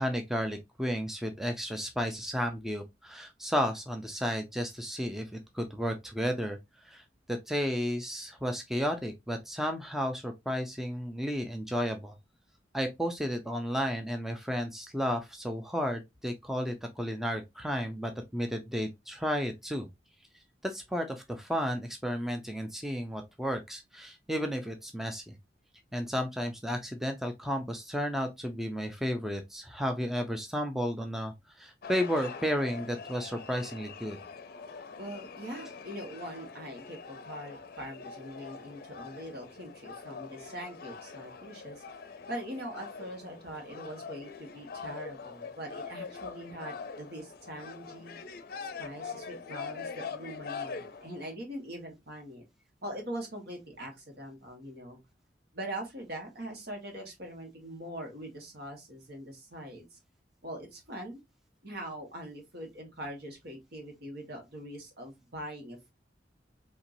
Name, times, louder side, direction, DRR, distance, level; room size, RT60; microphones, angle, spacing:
voice 1, 0.0-6.6 6.8-7.0 7.3-12.2 12.7-19.9 20.6-25.4 25.9-34.2, equal, ahead, 0.5 m, -33 dB
sound 1, 31.8-51.4, left 5 dB, 55° left, 0.5 m, -43 dB
voice 2, 35.0-41.8 42.3-48.2 48.8-52.4 52.8-55.0 55.5-60.0 60.4-61.2 61.6-65.9, right 1 dB, 65° right, 1.6 m, -42 dB
4.4 x 2.9 x 2.6 m
head